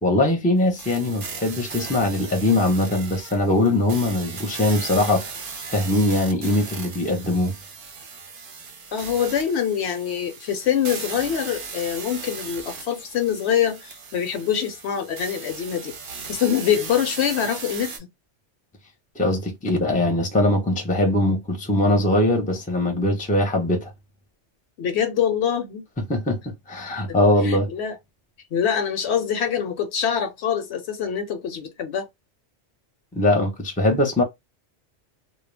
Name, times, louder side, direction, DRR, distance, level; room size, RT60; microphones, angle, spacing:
voice 1, 0.0-5.3 5.7-7.6 19.2-23.9 26.1-27.7 33.1-34.2, left 1 dB, 10° left, 0.6 m, -21 dB
sound 1, 0.8-18.0, right 5 dB, 55° right, 0.8 m, -37 dB
voice 2, 8.9-15.9 16.3-18.1 24.8-25.8 26.9-27.0 27.4-28.0 28.5-32.1, left 8 dB, 70° left, 0.8 m, -24 dB
2.2 x 2.1 x 3.2 m
omnidirectional pair, 1.2 m